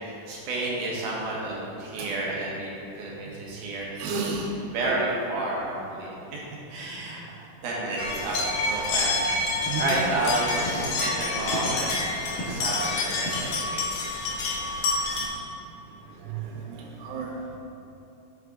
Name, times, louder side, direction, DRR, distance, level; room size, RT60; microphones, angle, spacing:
voice 1, 0.0-4.4 4.7-6.4 6.7-7.2 7.6-8.4 8.6-9.3 9.8-13.9, right 2 dB, 65° right, -5 dB, 2.3 m, -31 dB
voice 2, 4.0-4.5 9.7-9.9 16.3-17.3, right 4 dB, 85° right, -1 dB, 2.9 m, -32 dB
sound 1, 8.0-15.2, left 2 dB, 80° left, 3.1 m, -28 dB
8.1 x 6.4 x 3.7 m, 2.8 s
omnidirectional pair, 4.6 m